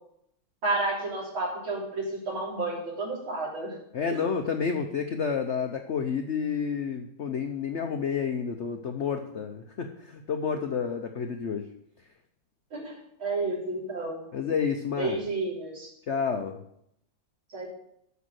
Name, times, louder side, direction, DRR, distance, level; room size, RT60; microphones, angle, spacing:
voice 1, 0.6-3.7 12.7-12.9 13.2-14.2 15.0-15.9 17.5-17.7, right 2 dB, 80° right, -4 dB, 4.3 m, -31 dB
voice 2, 3.9-11.7 14.3-15.2 16.1-16.6, left 6 dB, 75° left, 6 dB, 0.6 m, -30 dB
8.2 x 6.3 x 7.9 m, 0.75 s
omnidirectional pair, 2.2 m